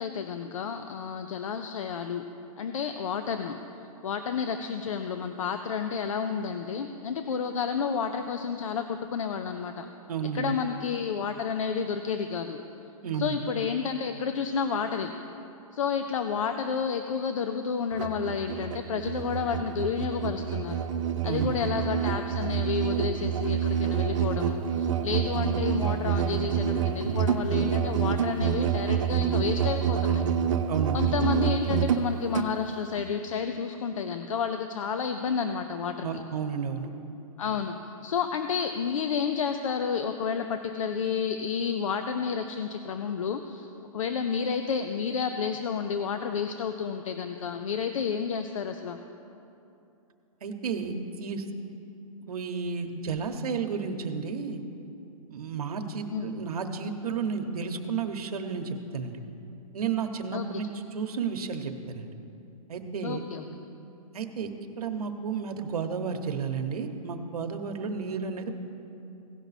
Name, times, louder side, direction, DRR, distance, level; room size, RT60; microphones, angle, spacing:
voice 1, 0.0-2.2 2.6-3.6 4.0-9.9 10.3-12.6 13.1-15.1 15.7-20.8 21.2-30.2 30.9-36.1 37.4-37.8 38.0-49.0 56.1-56.3 60.3-60.6 63.0-63.4, left 6 dB, 60° left, 7 dB, 0.6 m, -30 dB
voice 2, 10.1-10.5 13.0-13.4 21.2-21.5 30.7-31.0 36.0-36.9 50.4-51.4 52.3-54.6 55.3-59.2 59.7-62.1 62.7-63.2 64.1-64.5 64.8-68.6, right 6 dB, 90° right, 5 dB, 1.0 m, -32 dB
Musical instrument, 17.9-32.5, right 8 dB, 55° right, 0.6 m, -27 dB
16.5 x 5.8 x 4.1 m, 2.8 s
hypercardioid pair, 175°, 19 cm